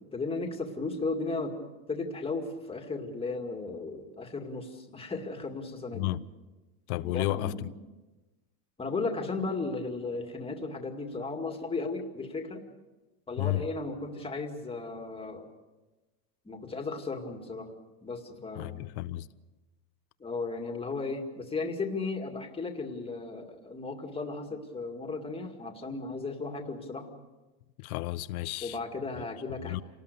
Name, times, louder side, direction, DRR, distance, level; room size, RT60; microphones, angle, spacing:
voice 1, 0.1-1.6 1.9-6.1 7.0-7.7 8.8-12.6 13.3-15.5 16.5-17.7 18.0-18.8 20.2-27.1 28.6-29.8, left 3 dB, 10° left, 2.3 m, -35 dB
voice 2, 5.9-6.3 6.9-7.7 13.4-13.6 18.5-19.3 27.8-28.8 29.6-29.8, left 16 dB, 75° left, 1.0 m, -32 dB
27.5 x 19.0 x 6.8 m
supercardioid pair, 150°, 44 cm